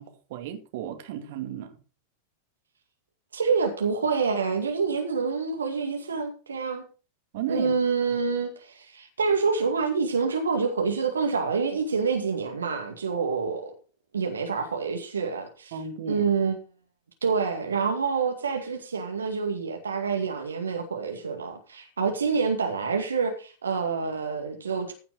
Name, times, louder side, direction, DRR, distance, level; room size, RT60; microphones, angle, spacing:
voice 1, 0.0-1.8 7.3-7.7 15.7-16.3, right 8 dB, 50° right, 2.2 m, -34 dB
voice 2, 3.3-6.8 7.5-13.7 14.1-15.7 16.1-16.6 17.2-24.9, right 5 dB, 70° right, 2.1 m, -27 dB
15.0 x 5.9 x 5.0 m
figure-of-eight pair, 90°, 0 cm